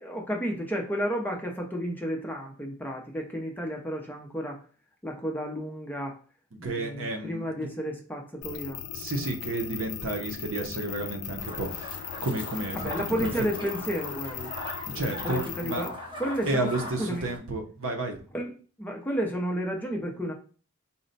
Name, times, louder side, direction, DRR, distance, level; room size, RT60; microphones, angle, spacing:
voice 1, 0.0-4.6 5.0-6.2 6.6-8.8 12.7-14.6 14.9-15.9 16.2-16.7 17.0-17.2 18.3-18.5 18.8-20.3, equal, 10° left, 0 dB, 0.5 m, -32 dB
voice 2, 6.6-7.7 8.9-12.9 13.2-13.3 14.9-15.8 16.5-18.2, right 2 dB, 60° right, 3 dB, 0.7 m, -31 dB
sound 1, 8.4-15.9, left 11 dB, 80° left, 0.3 m, -38 dB
sound 2, 11.4-17.4, left 1 dB, 20° right, 0.8 m, -40 dB
4.1 x 2.1 x 3.9 m, 0.39 s
head